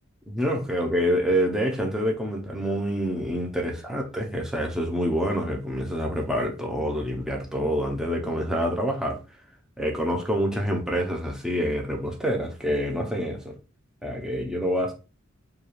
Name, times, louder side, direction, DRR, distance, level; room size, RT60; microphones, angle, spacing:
voice 1, 0.3-9.2 9.8-13.6 14.0-14.9, equal, 5° right, 0.5 m, -27 dB
2.4 x 2.2 x 3.0 m
head